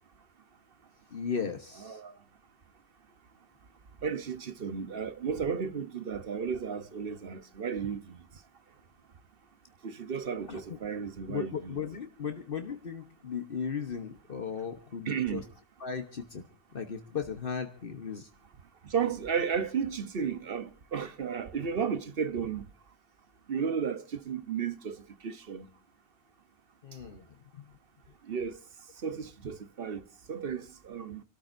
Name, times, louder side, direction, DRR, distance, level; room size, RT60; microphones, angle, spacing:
voice 1, 1.1-2.0 10.5-10.8 11.3-15.5 15.8-16.4 16.7-18.3 26.8-27.3 27.5-27.7, left 6 dB, 60° left, 1.3 m, -36 dB
voice 2, 4.0-8.4 9.8-11.7 15.1-15.5 18.8-22.7 23.5-25.7 28.2-28.6 29.0-31.2, right 6 dB, 60° right, 1.1 m, -34 dB
28.5 x 13.5 x 2.6 m
omnidirectional pair, 1.1 m